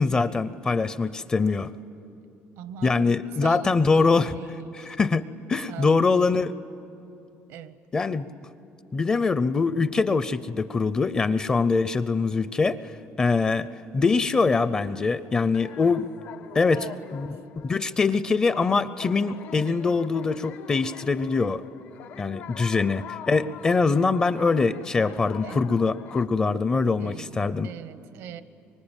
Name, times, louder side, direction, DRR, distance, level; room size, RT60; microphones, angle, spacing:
voice 1, 0.0-1.7 2.8-4.3 4.7-5.2 5.5-6.5 7.9-8.3 8.9-12.8 13.2-13.7 13.9-16.1 16.5-21.6 22.2-27.7, left 4 dB, 20° left, 14 dB, 0.5 m, -23 dB
voice 2, 2.6-5.0 5.7-6.5 7.5-7.8 16.8-17.2 25.4-25.9 27.0-28.4, right 10 dB, 80° right, 13 dB, 1.0 m, -42 dB
sound 1, 15.5-26.3, left 9 dB, 55° left, 0.7 m, -43 dB
24.5 x 24.0 x 8.9 m, 2.7 s
cardioid pair, 165°, 4 cm